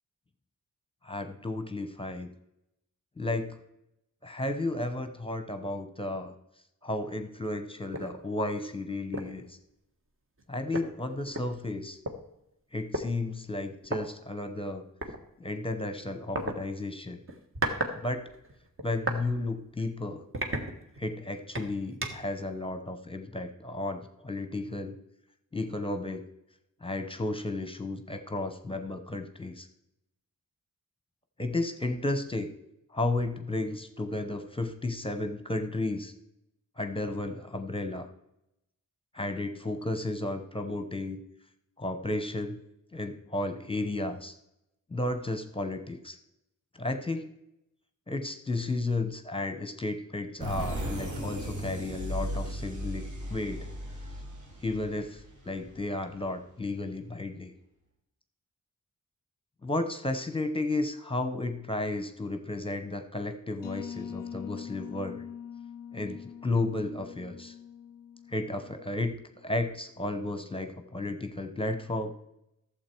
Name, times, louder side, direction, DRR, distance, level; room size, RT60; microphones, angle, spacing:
voice 1, 1.0-2.3 3.2-3.6 4.2-6.3 6.8-9.6 10.5-12.0 12.7-14.8 15.4-17.2 17.9-18.3 18.8-20.3 21.0-24.9 25.5-26.2 26.8-29.7 31.4-32.5 32.9-36.1 36.8-38.1 39.1-41.2 41.8-42.6 42.9-44.3 44.9-46.2 46.8-47.3 48.1-53.7 54.6-57.5 59.6-65.2 65.9-67.5 68.3-69.1 69.4-72.1, left 2 dB, 15° left, 8 dB, 0.9 m, -33 dB
sound 1, 7.9-8.1 8.6-8.7 9.1-9.4 10.4-10.5 10.7-12.1 12.9-13.1 13.8-14.0 15.0-15.2 16.3-16.5 17.3-18.0 18.3-19.2 19.7-19.8 20.3-21.1 21.5-22.3, right 2 dB, 40° right, 1.5 m, -34 dB
sound 2, 50.4-55.9, equal, 60° right, 2.5 m, -36 dB
sound 3, 63.6-69.2, left 8 dB, 85° left, 0.5 m, -43 dB
12.5 x 7.4 x 4.5 m, 0.83 s
wide cardioid pair, 115°, 32 cm